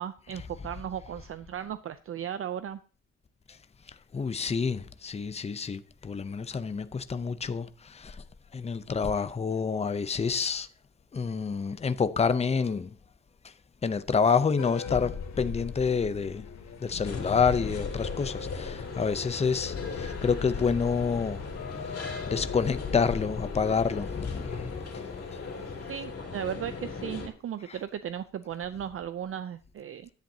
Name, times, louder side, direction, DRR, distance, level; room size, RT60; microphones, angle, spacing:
voice 1, 0.0-2.8 25.9-30.1, right 9 dB, 50° right, 0.6 m, -36 dB
voice 2, 4.1-8.2 8.5-10.7 11.1-13.0 13.8-16.5 16.8-21.4 21.8-24.8, left 5 dB, 20° left, 0.6 m, -28 dB
sound 1, 14.6-24.9, left 5 dB, 70° left, 2.3 m, -39 dB
sound 2, 17.0-27.3, left 4 dB, 50° left, 2.8 m, -38 dB
15.5 x 10.5 x 2.8 m
cardioid pair, 125°, 30 cm